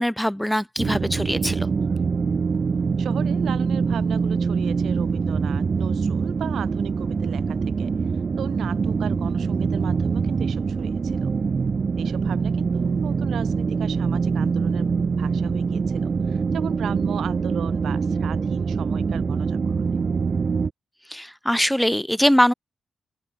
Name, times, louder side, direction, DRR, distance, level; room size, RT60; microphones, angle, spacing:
voice 1, 0.0-1.7 21.1-22.5, equal, 5° left, 0.7 m, -22 dB
sound 1, 0.8-20.7, right 5 dB, 50° right, 0.4 m, -24 dB
voice 2, 3.0-7.9 8.4-11.3 12.0-14.9 15.2-20.0, right 9 dB, 75° right, 1.1 m, -36 dB
open air
supercardioid pair, 50°, 0 cm